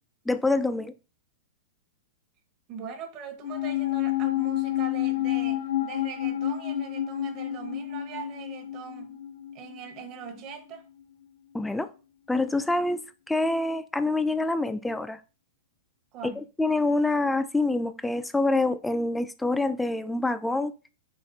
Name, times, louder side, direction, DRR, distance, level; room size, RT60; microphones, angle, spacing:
voice 1, 0.3-0.9 11.5-11.9 12.3-15.2 16.2-16.3 16.6-20.7, left 2 dB, 5° left, 0.3 m, -26 dB
voice 2, 2.7-9.2 9.5-10.9 16.1-16.4, right 6 dB, 35° right, 1.0 m, -41 dB
sound 1, 3.4-10.0 10.2-10.3, left 13 dB, 80° left, 0.7 m, -29 dB
4.2 x 3.1 x 3.9 m
hypercardioid pair, 135°, 0 cm